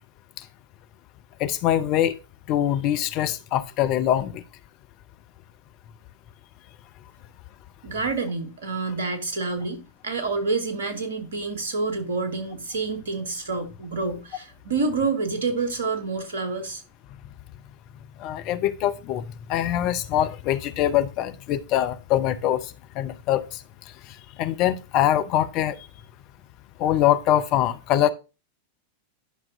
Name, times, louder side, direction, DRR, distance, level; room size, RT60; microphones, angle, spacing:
voice 1, 1.4-2.2 2.5-4.4 18.2-23.6 24.4-25.8 26.8-28.1, left 12 dB, 40° left, 0.6 m, -23 dB
voice 2, 7.8-16.8, right 4 dB, 65° right, 1.7 m, -28 dB
11.5 x 5.8 x 2.6 m
figure-of-eight pair, 90°, 0 cm